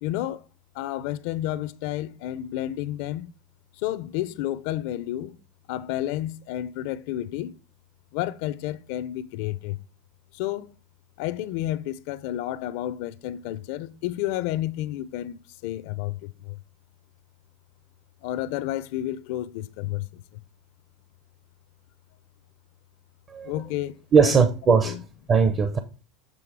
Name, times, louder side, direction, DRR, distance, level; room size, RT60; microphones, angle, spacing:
voice 1, 0.0-0.4 0.7-3.3 3.8-5.4 5.7-7.5 8.1-9.8 10.3-10.7 11.2-16.6 18.2-20.4 23.4-24.4 24.8-25.0, left 13 dB, 65° left, 0.5 m, -31 dB
voice 2, 24.1-25.0 25.3-25.8, right 5 dB, 25° right, 0.6 m, -19 dB
7.6 x 3.5 x 4.7 m
supercardioid pair, 155°, 0 cm